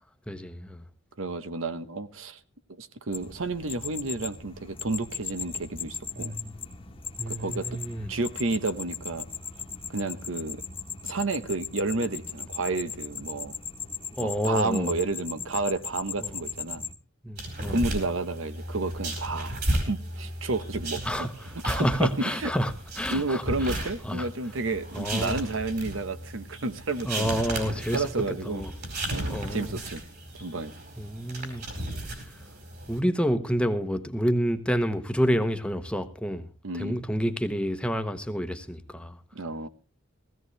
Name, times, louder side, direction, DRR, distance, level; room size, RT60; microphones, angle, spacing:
voice 1, 0.3-0.8 6.2-6.5 7.2-8.1 14.2-14.9 16.2-16.4 17.2-17.8 21.0-23.8 24.0-24.3 24.9-25.4 27.1-28.1 28.5-28.7 29.3-29.7 31.0-31.6 32.9-36.5 36.7-39.2, equal, 5° left, 0.9 m, -29 dB
voice 2, 1.2-2.4 2.8-6.3 7.3-7.7 8.1-9.3 9.9-10.6 11.0-13.5 14.2-16.8 17.7-19.6 19.9-21.3 21.7-22.5 23.1-27.3 27.9-28.6 29.1-30.0 30.3-30.7 36.6-37.0 39.3-39.7, right 3 dB, 90° right, 1.0 m, -31 dB
sound 1, 3.1-16.9, left 5 dB, 30° left, 1.2 m, -38 dB
sound 2, 17.4-33.0, right 1 dB, 55° right, 4.6 m, -35 dB
17.0 x 15.5 x 3.2 m
head